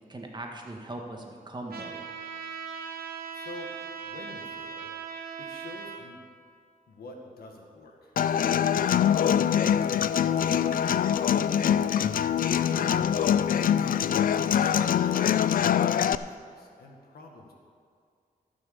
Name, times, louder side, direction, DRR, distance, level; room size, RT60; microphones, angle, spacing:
voice 1, 0.1-2.1 12.6-13.1, right 2 dB, 30° right, 1 dB, 1.8 m, -40 dB
Trumpet, 1.7-6.0, right 6 dB, 90° right, 1.2 m, -39 dB
voice 2, 3.3-3.7 4.0-5.1 5.4-6.3 6.9-8.2 13.3-17.5, left 2 dB, 90° left, 1 dB, 1.8 m, -48 dB
Human voice / Acoustic guitar, 8.2-16.1, left 9 dB, 65° left, 0.4 m, -24 dB
15.0 x 6.3 x 6.9 m, 2.2 s
cardioid pair, 75°, 15 cm